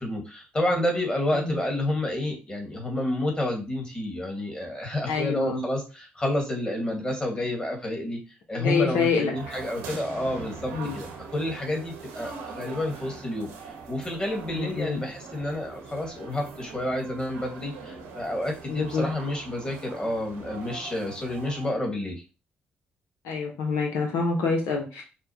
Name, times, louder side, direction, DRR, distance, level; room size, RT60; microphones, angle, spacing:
voice 1, 0.0-8.2 8.5-13.5 13.9-22.2, left 1 dB, 20° left, 0 dB, 1.8 m, -29 dB
voice 2, 5.1-5.6 8.6-9.3 10.7-11.0 14.5-15.0 18.7-19.1 23.2-25.0, left 5 dB, 80° left, 1 dB, 0.8 m, -26 dB
sound 1, 9.3-21.7, right 4 dB, 85° right, 1.1 m, -42 dB
5.5 x 2.2 x 2.9 m, 0.31 s
supercardioid pair, 55°, 5 cm